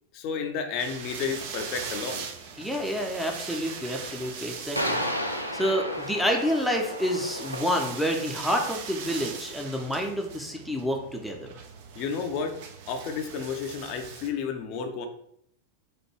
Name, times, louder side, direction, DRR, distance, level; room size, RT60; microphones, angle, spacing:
voice 1, 0.1-2.3 11.9-12.6 12.9-15.1, left 6 dB, 40° left, 5 dB, 0.6 m, -31 dB
sound 1, 0.8-14.3, right 6 dB, 50° right, 0.6 m, -41 dB
sound 2, 2.0-2.1 4.8-9.1, equal, 90° left, 0.4 m, -33 dB
voice 2, 2.6-11.5, equal, ahead, 1 dB, 0.6 m, -29 dB
4.3 x 2.6 x 4.4 m, 0.69 s
figure-of-eight pair, 90°, 0 cm